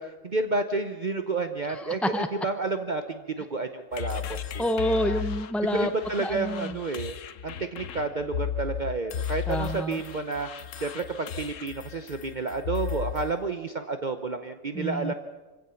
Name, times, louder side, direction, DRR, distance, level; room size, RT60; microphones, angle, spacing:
voice 1, 0.0-4.2 4.5-4.6 5.7-7.2 7.4-15.1, right 3 dB, 40° right, 8 dB, 0.9 m, -30 dB
voice 2, 1.7-2.3 4.6-5.9 6.2-6.8 9.5-10.0 14.8-15.1, equal, ahead, 8 dB, 0.4 m, -28 dB
sound 1, 3.9-13.4, left 9 dB, 80° left, 1.2 m, -35 dB
24.5 x 16.5 x 7.1 m, 1.2 s
omnidirectional pair, 1.3 m